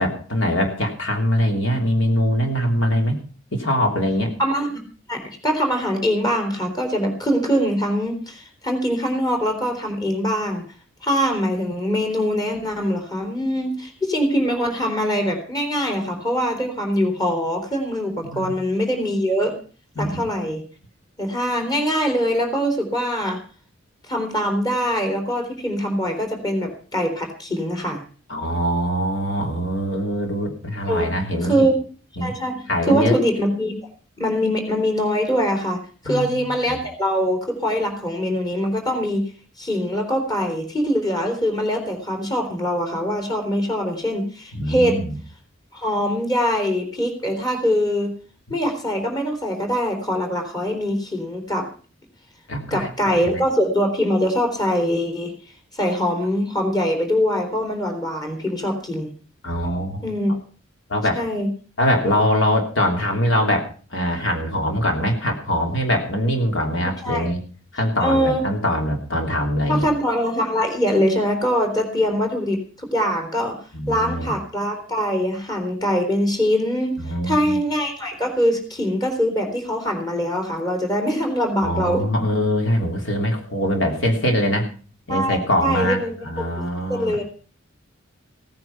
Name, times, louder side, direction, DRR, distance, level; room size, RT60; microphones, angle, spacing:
voice 1, 0.0-3.2 3.5-4.3 18.2-18.5 20.0-20.1 28.3-31.7 32.2-32.3 32.7-33.1 36.0-36.8 44.5-45.1 52.5-53.4 59.4-60.0 60.9-61.2 61.8-67.4 67.7-69.9 73.7-74.3 77.0-77.6 81.6-84.7 85.1-87.2, equal, 70° left, 2 dB, 3.2 m, -23 dB
voice 2, 4.4-4.8 5.1-10.6 11.0-19.5 20.0-20.6 21.2-23.4 24.1-28.0 30.9-31.8 32.2-33.8 34.2-35.8 36.0-39.2 39.6-45.0 45.7-48.1 48.5-51.7 52.7-55.3 55.7-59.1 60.0-60.3 61.1-61.5 66.8-67.3 68.0-68.4 69.7-73.6 73.9-77.0 77.2-82.0 85.1-86.5 86.9-87.2, equal, 20° left, 3 dB, 3.9 m, -23 dB
17.0 x 9.7 x 5.9 m, 0.40 s
head